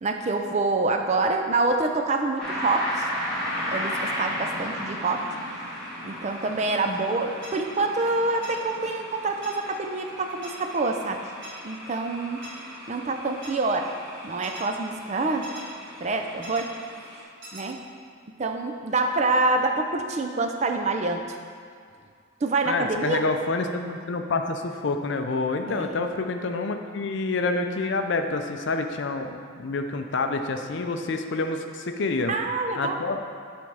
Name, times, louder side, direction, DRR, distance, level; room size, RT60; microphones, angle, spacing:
voice 1, 0.0-3.1 3.6-5.3 6.0-11.3 11.6-12.6 12.9-13.9 14.2-15.5 16.0-16.7 17.5-17.8 18.4-21.3 22.4-23.2 25.7-26.0 32.3-33.0, right 3 dB, 35° right, 4 dB, 0.4 m, -26 dB
sound 1, 2.4-17.2, equal, 5° left, 1.5 m, -36 dB
sound 2, 7.4-7.5 8.4-8.5 9.4-9.5 10.4-10.5 11.4-11.5 12.4-12.5 13.4-13.5 14.4-14.6 15.4-15.6 16.4-16.6 17.4-17.6, right 1 dB, 55° right, 1.6 m, -40 dB
voice 2, 22.7-32.3 32.8-33.2, left 3 dB, 60° left, 6 dB, 0.4 m, -28 dB
7.6 x 3.5 x 5.5 m, 2.2 s
head